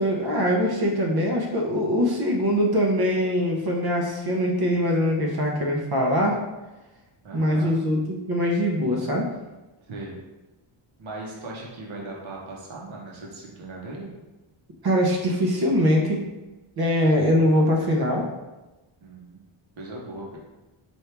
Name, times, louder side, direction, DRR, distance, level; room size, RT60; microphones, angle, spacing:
voice 1, 0.0-6.4 7.3-9.3 14.8-16.3 16.8-18.2, equal, 50° right, -1 dB, 0.8 m, -22 dB
voice 2, 7.2-7.7 9.8-10.2 11.0-14.1 19.0-19.4 19.8-20.4, right 2 dB, 65° right, -2 dB, 1.1 m, -38 dB
4.5 x 2.7 x 3.3 m, 1.1 s
wide cardioid pair, 105°, 50 cm